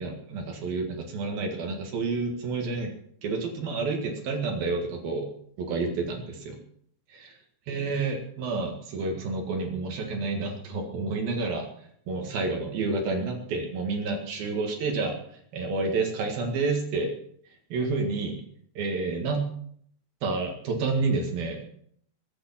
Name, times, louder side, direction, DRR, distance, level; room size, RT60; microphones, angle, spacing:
voice 1, 0.0-2.9 3.2-5.3 5.6-6.6 7.1-7.4 7.7-11.7 12.1-17.1 17.7-18.4 18.8-19.5 20.2-21.6, right 3 dB, 65° right, 2 dB, 3.5 m, -29 dB
22.5 x 8.6 x 5.8 m, 0.65 s
omnidirectional pair, 4.7 m